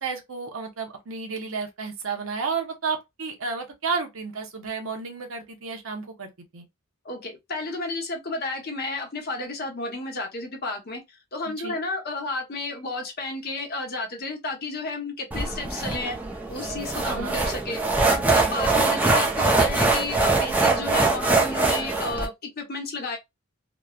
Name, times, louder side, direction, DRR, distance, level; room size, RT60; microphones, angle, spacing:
voice 1, 0.0-6.7 11.6-11.8 17.0-17.4 18.6-18.9, right 5 dB, 80° right, 0.8 m, -32 dB
voice 2, 7.0-11.0 11.3-16.2 16.5-17.8 18.1-23.2, left 2 dB, 50° left, 0.9 m, -32 dB
sound 1, 15.3-22.3, right 3 dB, 10° right, 0.5 m, -23 dB
3.0 x 2.2 x 2.3 m
head